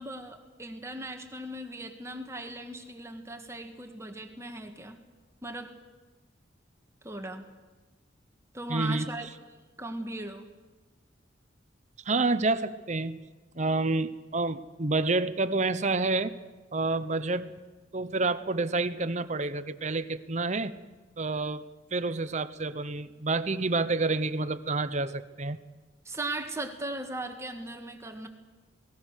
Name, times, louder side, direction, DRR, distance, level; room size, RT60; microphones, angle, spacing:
voice 1, 0.0-5.0 5.4-5.7 7.0-7.4 8.5-9.3 9.8-10.5 26.0-28.3, right 1 dB, 15° right, 5 dB, 1.7 m, -38 dB
voice 2, 8.7-9.1 12.0-13.2 13.6-16.4 16.7-17.5 17.9-20.8 21.2-21.6 21.9-25.6, right 3 dB, 40° right, 13 dB, 0.9 m, -28 dB
28.5 x 19.5 x 6.5 m, 1.3 s
head